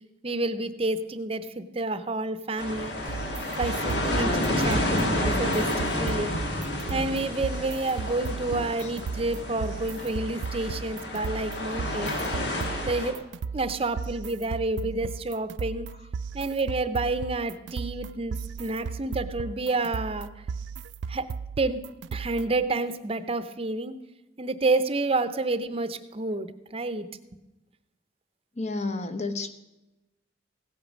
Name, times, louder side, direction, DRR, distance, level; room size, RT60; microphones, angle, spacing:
voice 1, 0.2-3.1 3.6-6.4 6.9-12.2 12.9-13.2 13.5-15.9 16.3-20.3 21.1-21.2 21.6-21.8 22.1-23.9 24.4-27.1, right 2 dB, 30° right, 12 dB, 0.7 m, -29 dB
sound 1, 2.6-13.1, left 1 dB, 75° left, 2.1 m, -30 dB
sound 2, 3.1-22.6, right 5 dB, 80° right, 0.3 m, -36 dB
voice 2, 28.6-29.5, left 3 dB, 40° left, 9 dB, 1.0 m, -30 dB
16.0 x 8.6 x 6.3 m, 1.0 s
head